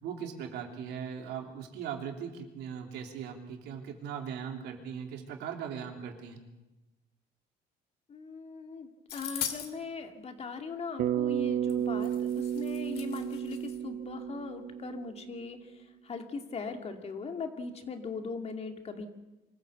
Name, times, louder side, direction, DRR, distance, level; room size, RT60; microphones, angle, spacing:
voice 1, 0.0-6.4, right 7 dB, 85° right, 3 dB, 3.0 m, -39 dB
voice 2, 8.1-15.7 16.0-19.1, left 4 dB, 40° left, 5 dB, 2.3 m, -40 dB
sound 1, 9.1-9.7 11.7-11.8 12.0-13.7, left 9 dB, 70° left, 2.6 m, -39 dB
Bass guitar, 11.0-15.4, right 10 dB, 55° right, 1.0 m, -32 dB
24.5 x 14.0 x 8.1 m, 1.0 s
cardioid pair, 110°, 17 cm